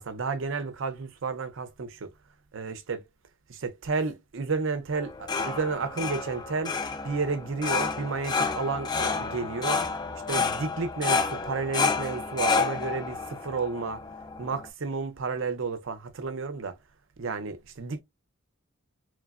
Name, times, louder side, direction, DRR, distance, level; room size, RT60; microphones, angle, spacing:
voice 1, 0.0-2.1 2.5-3.0 3.5-6.8 7.0-9.8 10.3-14.0 14.4-16.8 17.2-18.0, right 4 dB, 60° right, 0.5 m, -31 dB
sound 1, 4.9-14.7, left 4 dB, 20° left, 0.3 m, -30 dB
3.1 x 2.0 x 2.3 m
head